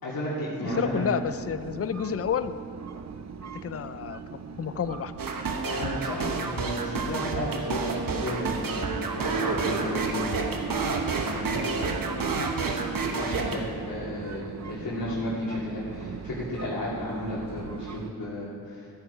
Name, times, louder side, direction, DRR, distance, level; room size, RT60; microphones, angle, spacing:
voice 1, 0.0-1.1 5.6-12.4 13.2-18.9, left 1 dB, 70° left, -10 dB, 3.1 m, -33 dB
sound 1, 0.6-18.1, right 6 dB, 45° right, 0.7 m, -41 dB
voice 2, 0.8-2.5 3.6-4.2 4.6-5.1 15.0-15.1, left 7 dB, 40° left, 13 dB, 0.5 m, -29 dB
sound 2, 5.2-13.6, right 4 dB, 65° right, 1.2 m, -29 dB
14.5 x 8.4 x 4.8 m, 2.3 s
cardioid pair, 55°, 37 cm